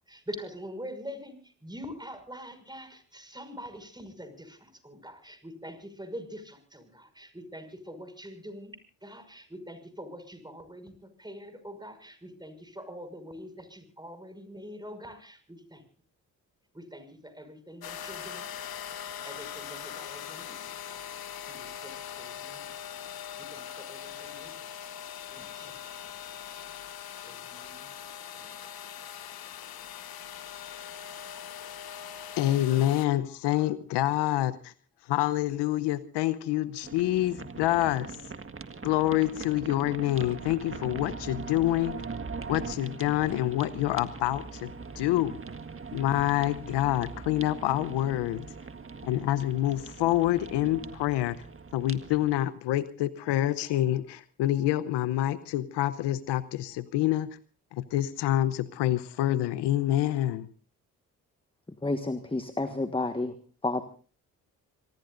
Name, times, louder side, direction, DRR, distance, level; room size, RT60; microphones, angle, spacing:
voice 1, 0.0-1.4 1.6-4.6 4.8-8.8 9.0-10.9 11.2-15.8 16.7-18.5 19.2-20.6 20.9-21.0 21.5-22.7 23.4-24.5 25.3-25.7 27.2-27.9 28.4-28.8, equal, 10° right, 9 dB, 6.0 m, -44 dB
sound 1, 17.8-33.1, left 9 dB, 60° left, 1.3 m, -41 dB
voice 2, 32.4-34.7 35.1-38.1 38.8-42.0 42.5-45.4 45.9-48.4 49.0-51.4 51.7-57.3 57.7-60.5, left 14 dB, 80° left, 15 dB, 0.9 m, -27 dB
sound 2, 36.8-52.4, right 4 dB, 30° right, 1.7 m, -41 dB
voice 3, 61.8-63.3 63.6-63.8, left 2 dB, 15° left, 9 dB, 1.5 m, -29 dB
26.5 x 20.0 x 2.6 m, 0.36 s
hypercardioid pair, 50°, 41 cm